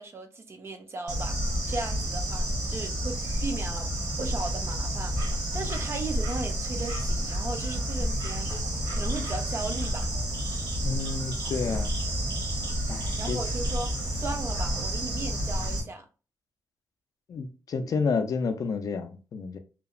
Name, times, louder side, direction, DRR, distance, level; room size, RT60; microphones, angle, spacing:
voice 1, 0.0-1.4 1.7-3.9 4.2-5.2 5.5-8.5 8.9-10.1 13.2-16.1, right 3 dB, 35° right, 0.4 m, -36 dB
Bird / Insect, 1.1-15.8, equal, 65° right, 1.0 m, -30 dB
voice 2, 10.8-12.0 12.9-13.4 17.3-19.6, left 4 dB, 50° left, 0.3 m, -30 dB
2.8 x 2.0 x 2.4 m
wide cardioid pair, 135°, 8 cm